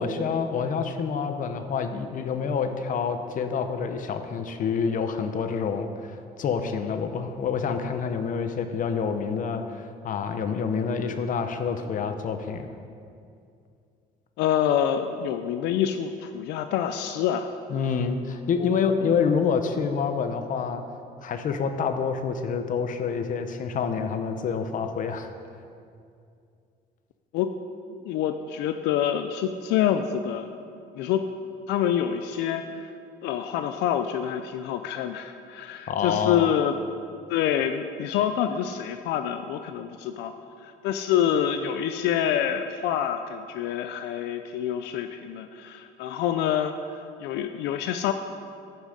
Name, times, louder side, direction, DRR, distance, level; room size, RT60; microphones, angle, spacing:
voice 1, 0.0-12.7 17.7-20.8 21.2-25.3 35.9-36.5, left 6 dB, 50° left, 8 dB, 0.9 m, -27 dB
voice 2, 14.4-17.5 18.6-18.7 27.3-27.5 27.9-30.5 30.9-31.3 31.7-32.9 33.2-36.8 37.3-40.3 40.6-48.1, left 9 dB, 90° left, 8 dB, 0.5 m, -27 dB
15.0 x 6.2 x 5.1 m, 2.4 s
cardioid pair, 110°, 17 cm